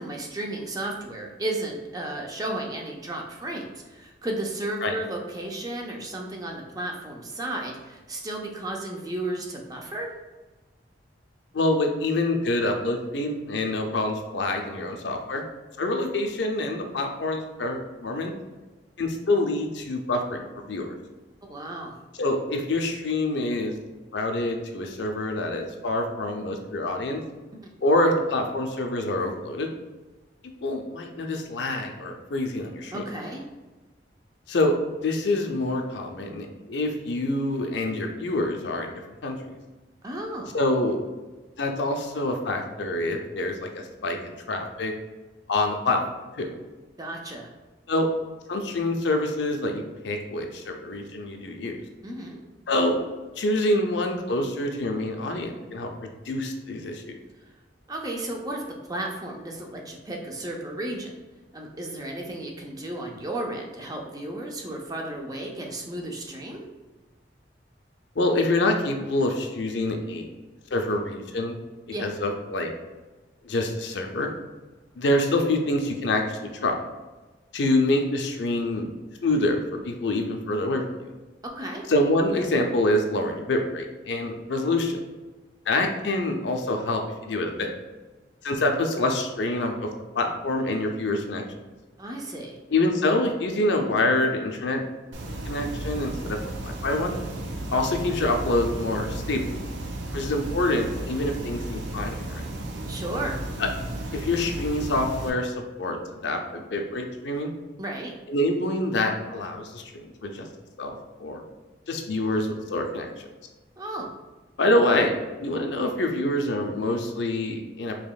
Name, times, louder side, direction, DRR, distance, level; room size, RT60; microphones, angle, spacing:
voice 1, 0.0-10.1 21.4-21.9 32.9-33.4 40.0-40.6 47.0-47.5 52.0-52.4 57.4-57.5 57.9-61.1 61.5-66.6 71.9-72.1 81.6-81.8 92.0-92.6 102.9-103.4 107.8-108.1 113.8-114.1, right 1 dB, 20° right, 0 dB, 0.5 m, -33 dB
voice 2, 11.5-15.4 15.8-18.3 19.0-20.9 22.2-23.7 24.1-27.2 27.8-29.7 30.6-33.0 34.5-34.8 35.0-39.6 40.5-41.0 41.6-44.9 45.5-46.0 46.3-46.5 47.9-48.1 48.5-51.7 52.7-53.0 53.4-57.2 68.2-70.3 70.7-71.6 72.0-72.7 73.4-74.3 75.0-76.7 77.5-78.9 79.2-81.1 81.9-85.0 85.7-87.7 88.4-89.9 90.1-91.4 92.7-94.8 95.4-97.2 97.7-99.5 100.1-102.4 103.6-103.7 104.1-107.5 108.3-110.5 110.8-111.4 111.9-113.3 114.6-118.0, left 2 dB, 80° left, 3 dB, 0.6 m, -26 dB
sound 1, 95.1-105.3, right 1 dB, 85° right, 0.6 m, -34 dB
5.0 x 3.0 x 2.3 m, 1.2 s
head